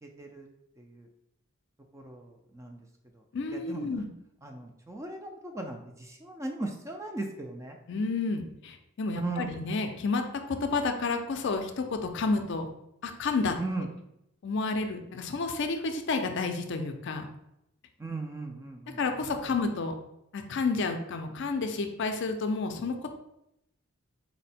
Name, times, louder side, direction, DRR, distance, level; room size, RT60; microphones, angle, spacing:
voice 1, 0.0-0.5 0.8-1.1 1.9-2.8 3.5-4.0 4.4-7.8 9.2-9.5 13.6-13.9 18.0-19.5, right 2 dB, 15° right, 3 dB, 0.3 m, -38 dB
voice 2, 3.3-4.1 7.9-12.7 13.0-13.6 14.4-17.2 19.0-19.9 20.3-23.1, left 3 dB, 55° left, 6 dB, 0.4 m, -30 dB
4.3 x 2.1 x 4.1 m, 0.82 s
head